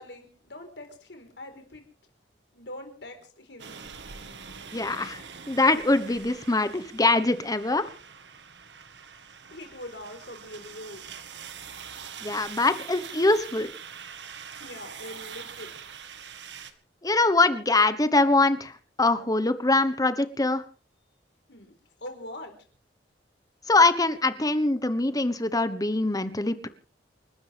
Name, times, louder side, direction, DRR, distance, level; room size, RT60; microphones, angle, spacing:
voice 1, 0.0-1.9 2.5-3.7 9.5-11.1 14.6-15.7 21.5-21.7 22.0-22.5, left 1 dB, 80° left, 5 dB, 4.5 m, -42 dB
sound 1, 3.6-16.7, right 7 dB, 80° right, 1.7 m, -44 dB
voice 2, 4.7-5.2 5.5-7.8 12.2-13.7 17.0-18.7 19.0-20.6 23.7-26.7, left 2 dB, 20° left, 12 dB, 1.2 m, -23 dB
29.5 x 12.5 x 3.5 m, 0.40 s
head